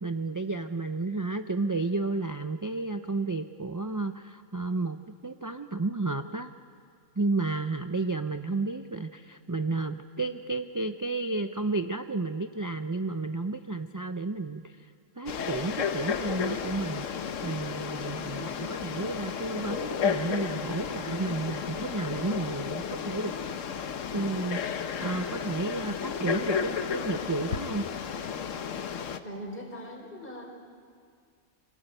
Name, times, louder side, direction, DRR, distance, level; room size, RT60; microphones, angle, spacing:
voice 1, 0.0-5.0 5.2-6.5 7.2-23.3 24.1-27.9, right 3 dB, 30° right, 7 dB, 0.4 m, -32 dB
Frog, 15.3-29.2, left 7 dB, 80° left, 1.3 m, -33 dB
voice 2, 29.2-30.4, equal, 45° left, 0 dB, 4.2 m, -40 dB
25.0 x 17.5 x 9.1 m, 2.2 s
omnidirectional pair, 1.3 m